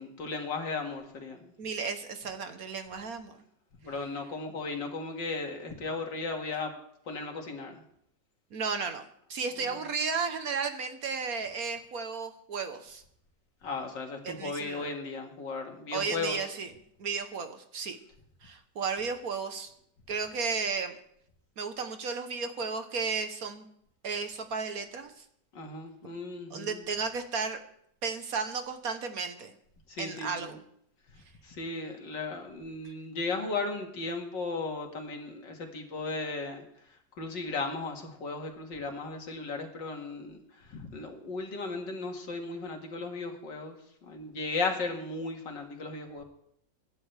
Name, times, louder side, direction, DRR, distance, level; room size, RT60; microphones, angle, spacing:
voice 1, 0.0-1.5 3.8-6.7 7.1-7.8 13.6-16.5 25.5-26.8 29.9-30.6 31.4-36.6 37.2-46.2, left 3 dB, 80° left, 2 dB, 2.7 m, -36 dB
voice 2, 1.6-3.4 8.5-9.0 9.3-13.0 14.2-14.9 15.9-16.7 17.0-18.0 18.4-19.7 20.1-21.0 21.6-23.7 24.0-25.1 26.5-27.6 28.0-29.5 30.0-30.6 32.8-32.9, right 5 dB, 55° right, 8 dB, 1.5 m, -34 dB
24.5 x 11.0 x 3.4 m, 0.71 s
omnidirectional pair, 1.9 m